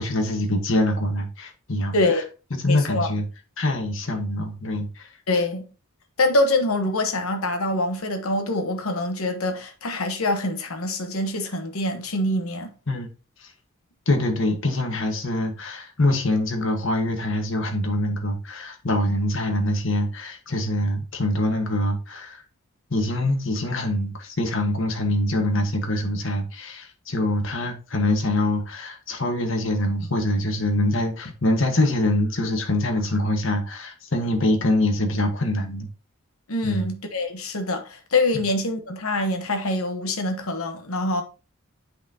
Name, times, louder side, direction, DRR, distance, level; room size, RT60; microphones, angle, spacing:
voice 1, 0.0-2.2 2.5-3.2 3.6-5.1 12.9-13.1 13.4-13.5 14.1-22.4 22.9-35.9 36.6-36.9 38.3-38.4, left 1 dB, 65° left, 1.4 m, -24 dB
voice 2, 2.6-3.1 5.3-5.7 6.2-12.7 36.5-41.2, left 2 dB, 90° left, 1.1 m, -25 dB
8.0 x 5.9 x 2.8 m
head